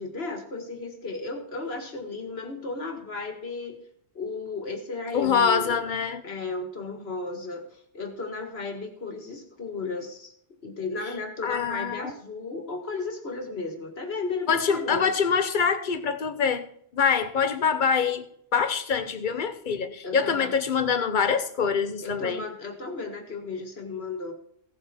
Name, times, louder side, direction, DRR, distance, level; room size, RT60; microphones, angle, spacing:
voice 1, 0.0-3.8 4.1-5.8 6.2-10.3 10.6-15.1 20.0-20.5 22.0-24.3, left 3 dB, 65° left, 4 dB, 2.2 m, -34 dB
voice 2, 5.1-6.2 11.4-12.1 14.5-16.7 16.9-18.2 18.5-22.4, left 6 dB, 45° left, 9 dB, 1.1 m, -25 dB
16.5 x 7.7 x 4.4 m, 0.68 s
omnidirectional pair, 1.2 m